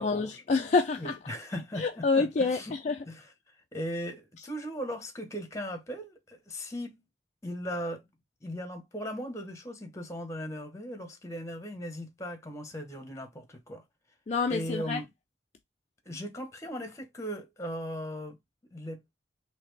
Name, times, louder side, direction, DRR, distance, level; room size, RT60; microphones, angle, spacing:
voice 1, 0.0-1.2 1.8-3.0 14.3-15.0, left 4 dB, 40° left, 0.4 m, -27 dB
voice 2, 1.0-2.1 2.4-2.8 3.1-7.0 7.4-8.0 8.4-13.8 14.5-15.1 16.0-18.4 18.7-19.0, equal, 15° left, 1.1 m, -38 dB
4.1 x 2.9 x 3.2 m
head